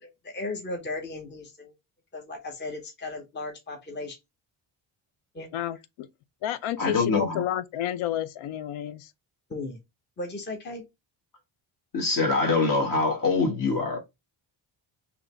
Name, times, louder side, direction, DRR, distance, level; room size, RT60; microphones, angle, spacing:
voice 1, 0.0-1.7 2.1-4.2 5.3-5.5 9.5-9.8 10.2-10.8, left 2 dB, 20° left, 0.8 m, -36 dB
voice 2, 5.5-6.1 6.4-9.1, left 11 dB, 85° left, 0.5 m, -31 dB
voice 3, 6.8-7.4 11.9-14.0, left 3 dB, 45° left, 1.5 m, -24 dB
3.8 x 2.9 x 3.2 m
cardioid pair, 105°, 48 cm